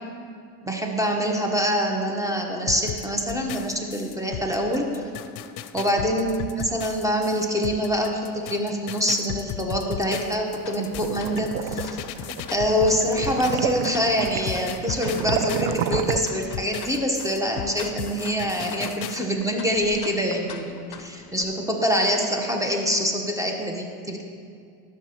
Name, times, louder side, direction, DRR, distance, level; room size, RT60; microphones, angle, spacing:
voice 1, 0.6-5.0 5.7-12.0 12.5-24.2, equal, 5° right, 1 dB, 1.1 m, -25 dB
sound 1, 2.7-13.9 14.2-19.2, left 11 dB, 75° left, 0.6 m, -36 dB
sound 2, 10.6-21.4, left 7 dB, 40° left, 0.7 m, -43 dB
sound 3, 10.6-16.2, right 11 dB, 65° right, 0.5 m, -30 dB
13.0 x 6.2 x 3.0 m, 2.3 s
supercardioid pair, 80°, 48 cm